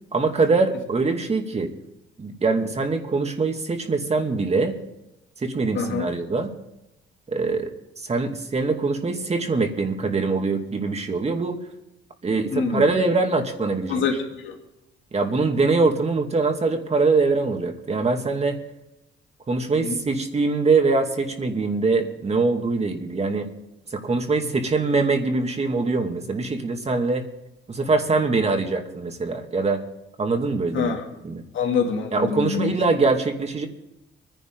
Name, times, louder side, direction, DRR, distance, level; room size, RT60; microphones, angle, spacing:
voice 1, 0.1-1.7 2.2-4.7 5.4-6.5 7.3-11.6 12.2-14.0 15.1-18.6 19.5-23.5 23.9-27.2 27.7-29.8 30.2-30.9 31.2-31.4 32.1-33.7, right 3 dB, 30° right, 4 dB, 2.4 m, -23 dB
voice 2, 5.7-6.1 12.5-12.8 13.9-14.5 19.7-20.0 30.7-31.0 31.5-32.7, left 6 dB, 75° left, 2 dB, 2.7 m, -25 dB
24.0 x 10.5 x 3.9 m, 0.91 s
cardioid pair, 90°, 20 cm